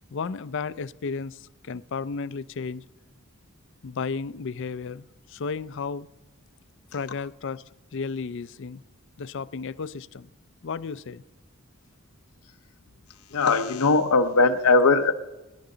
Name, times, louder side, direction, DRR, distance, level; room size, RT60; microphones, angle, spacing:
voice 1, 0.1-2.8 3.8-6.1 6.9-7.6 7.9-8.8 9.2-10.3 10.6-11.2, left 5 dB, 55° left, 16 dB, 0.4 m, -33 dB
voice 2, 13.3-15.1, left 3 dB, 85° left, 6 dB, 0.7 m, -19 dB
25.0 x 11.0 x 3.9 m, 1.1 s
head